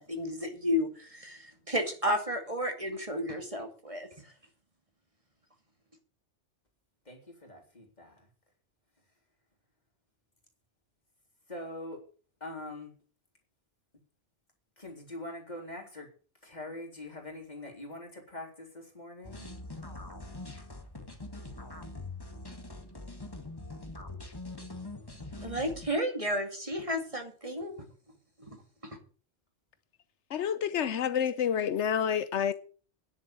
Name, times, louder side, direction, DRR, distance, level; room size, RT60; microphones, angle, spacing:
voice 1, 0.0-4.3 25.4-27.8 28.4-28.6, equal, 30° right, 2.3 m, -32 dB
voice 2, 7.0-8.3 11.5-12.0 12.4-12.9 14.8-16.1 16.4-19.5, left 1 dB, 40° left, 3.8 m, -43 dB
sound 1, 19.2-25.9, left 2 dB, 20° left, 1.9 m, -43 dB
voice 3, 30.3-32.5, left 8 dB, 80° left, 1.1 m, -28 dB
10.5 x 7.4 x 8.7 m
omnidirectional pair, 1.2 m